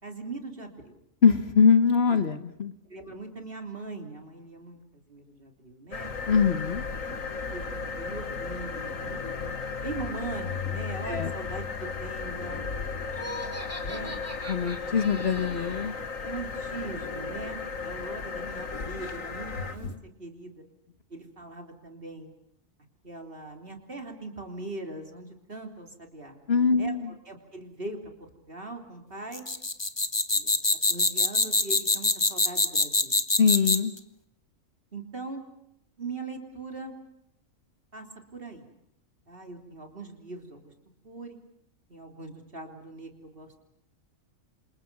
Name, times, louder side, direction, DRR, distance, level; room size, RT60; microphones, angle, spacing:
voice 1, 0.0-1.0 2.9-6.1 7.0-7.2 7.5-9.2 9.8-12.6 13.8-14.2 16.2-19.9 20.2-20.7 21.1-22.3 23.0-26.4 26.8-26.9 27.3-29.4 30.3-30.6 30.9-33.2 34.9-35.4 36.0-36.9 37.9-38.1 38.3-38.7 39.3-40.7 41.0-41.4 41.9-43.6, right 3 dB, 40° right, 3 dB, 3.5 m, -41 dB
voice 2, 1.2-2.7 6.3-6.8 11.0-11.3 14.5-15.9 26.5-27.1 33.4-33.9, left 6 dB, 50° left, 9 dB, 1.5 m, -23 dB
sound 1, 5.9-20.0, left 4 dB, 70° left, 2.1 m, -35 dB
Laughter, 13.1-15.9, equal, 10° right, 3.3 m, -40 dB
sound 2, 29.3-34.0, left 2 dB, 20° left, 1.2 m, -24 dB
28.0 x 27.5 x 6.1 m, 0.77 s
omnidirectional pair, 1.4 m